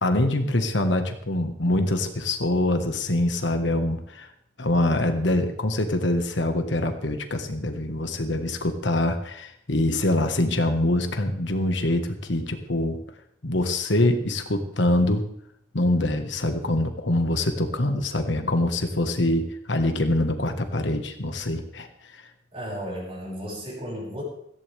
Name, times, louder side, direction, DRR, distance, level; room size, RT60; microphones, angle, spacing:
voice 1, 0.0-4.3 4.6-13.0 13.4-15.2 15.7-21.9, left 1 dB, 70° left, 6 dB, 1.5 m, -24 dB
voice 2, 22.5-24.2, equal, 30° right, -3 dB, 6.1 m, -34 dB
17.5 x 15.0 x 3.5 m, 0.72 s
head